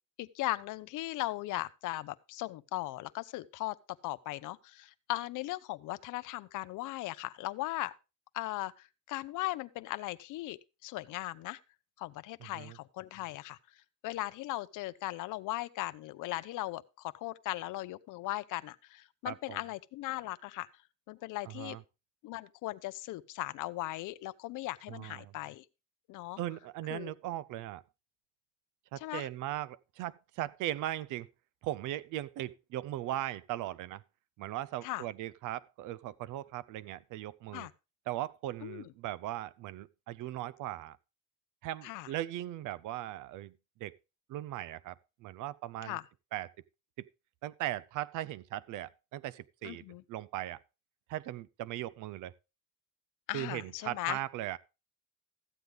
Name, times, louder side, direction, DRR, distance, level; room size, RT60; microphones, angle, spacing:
voice 1, 0.2-3.8 4.0-7.9 8.3-11.6 12.0-13.6 14.0-20.7 21.1-21.8 22.2-25.6 26.1-26.4 26.9-27.1 29.0-29.3 34.8-35.0 37.5-37.7 38.6-38.8 41.8-42.1 45.8-46.0 49.6-50.0 53.3-54.2, left 17 dB, 90° left, 0.6 m, -38 dB
voice 2, 12.4-12.8 19.2-19.6 21.5-21.8 24.9-25.3 26.4-27.8 28.9-31.3 31.6-34.0 34.4-37.7 38.1-41.0 41.6-43.5 43.8-43.9 44.3-46.0 46.3-46.5 47.0-47.1 47.4-50.6 51.1-52.3 53.3-54.6, right 14 dB, 90° right, 0.5 m, -38 dB
13.5 x 7.9 x 3.4 m
cardioid pair, 90°, 30 cm